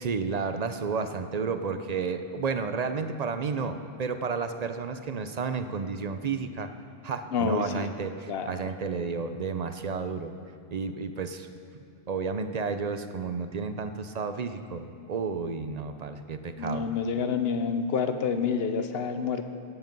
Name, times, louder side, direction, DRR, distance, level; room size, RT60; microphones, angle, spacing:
voice 1, 0.0-6.7 7.0-10.3 10.7-11.5 12.1-16.8, right 5 dB, 45° right, 9 dB, 0.6 m, -32 dB
voice 2, 7.3-7.9 8.3-8.5 16.6-19.4, left 6 dB, 60° left, 8 dB, 1.0 m, -28 dB
17.0 x 8.0 x 5.3 m, 2.5 s
omnidirectional pair, 1.2 m